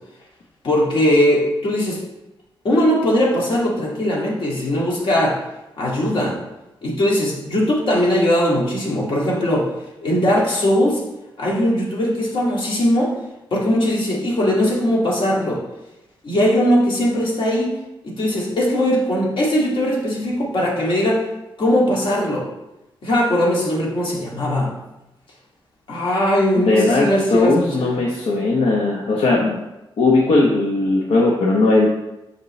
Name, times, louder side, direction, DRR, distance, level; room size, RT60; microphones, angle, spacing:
voice 1, 0.6-2.0 2.6-5.4 5.8-6.4 6.8-9.7 10.0-11.0 11.4-13.1 13.5-15.6 16.2-17.7 18.0-21.2 21.6-22.5 23.0-24.7 25.9-27.9, equal, 65° left, -4 dB, 2.0 m, -19 dB
voice 2, 26.6-29.6 30.0-31.9, left 2 dB, 85° left, -3 dB, 1.0 m, -18 dB
6.9 x 5.2 x 3.2 m, 0.95 s
cardioid pair, 100°, 9 cm